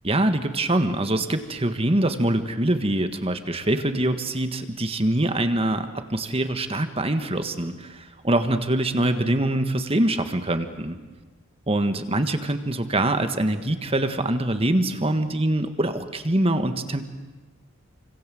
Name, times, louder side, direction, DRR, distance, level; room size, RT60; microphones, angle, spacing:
voice 1, 0.0-11.0 11.7-17.0, right 1 dB, 30° right, 8 dB, 1.6 m, -24 dB
28.5 x 26.0 x 7.8 m, 1.3 s
head